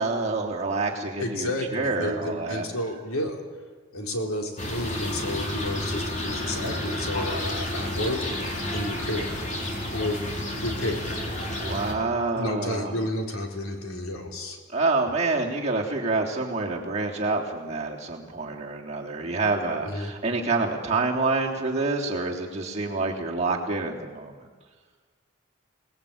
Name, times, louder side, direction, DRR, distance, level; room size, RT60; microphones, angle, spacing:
voice 1, 0.0-2.7 11.6-12.9 14.7-24.3, right 3 dB, 30° right, -2 dB, 3.4 m, -27 dB
voice 2, 1.2-3.4 3.9-9.4 9.9-10.2 10.6-11.1 12.3-14.6 19.8-20.1, left 1 dB, 90° left, 2 dB, 4.1 m, -31 dB
sound 1, 4.6-11.9, left 1 dB, 35° left, 4.2 m, -31 dB
28.0 x 19.5 x 8.8 m, 1.5 s
head